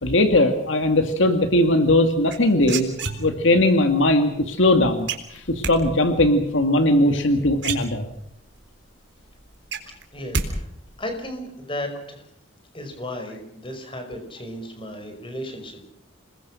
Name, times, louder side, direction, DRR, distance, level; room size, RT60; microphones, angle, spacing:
voice 1, 0.0-2.9 3.2-8.0, left 1 dB, 70° left, 7 dB, 2.2 m, -19 dB
sound 1, 2.3-3.6 5.1-5.8 7.2-7.3 7.6-8.4 8.8-8.9 9.2-10.5 10.7-11.2, right 4 dB, 60° right, 4.0 m, -29 dB
voice 2, 10.1-10.7 11.0-12.2 12.7-15.8, left 1 dB, 25° left, 5 dB, 5.4 m, -34 dB
27.5 x 21.5 x 6.4 m, 0.77 s
head